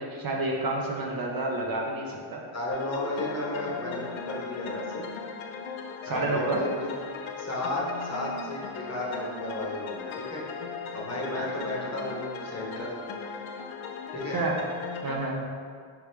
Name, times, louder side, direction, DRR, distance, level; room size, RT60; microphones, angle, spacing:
voice 1, 0.0-2.4 6.0-6.6 11.3-11.4 14.3-14.6 15.0-15.5, right 2 dB, 45° right, -1 dB, 0.6 m, -29 dB
voice 2, 2.5-5.0 6.0-6.9 7.4-10.4 10.9-12.9 14.1-14.4, left 1 dB, 30° left, -3 dB, 1.0 m, -33 dB
sound 1, 2.7-15.2, left 5 dB, 70° left, 0.5 m, -38 dB
4.7 x 3.4 x 3.3 m, 2.1 s
cardioid pair, 105°, 50 cm